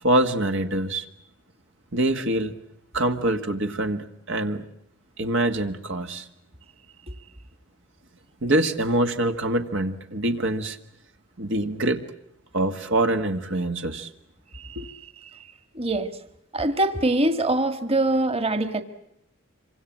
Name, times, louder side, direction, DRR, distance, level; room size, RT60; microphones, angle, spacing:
voice 1, 0.0-1.1 1.9-2.5 2.9-4.6 5.2-6.3 8.4-10.8 11.4-12.0 12.5-14.1 14.8-14.9, right 1 dB, 65° right, 1.8 m, -24 dB
voice 2, 15.8-16.1 16.5-18.8, right 2 dB, 30° right, 1.9 m, -23 dB
27.0 x 25.5 x 7.4 m
head